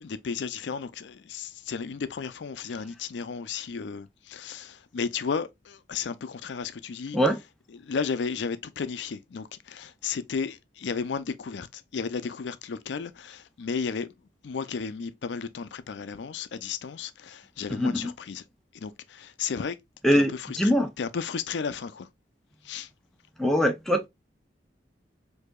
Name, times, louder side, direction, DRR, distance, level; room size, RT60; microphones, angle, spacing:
voice 1, 0.0-7.2 7.7-14.1 14.4-18.4 18.7-19.8 20.1-22.1 22.6-22.9, left 5 dB, 80° left, 0.4 m, -34 dB
voice 2, 17.7-18.1 20.0-20.9 23.4-24.1, equal, ahead, 0.5 m, -23 dB
4.7 x 2.7 x 2.2 m
head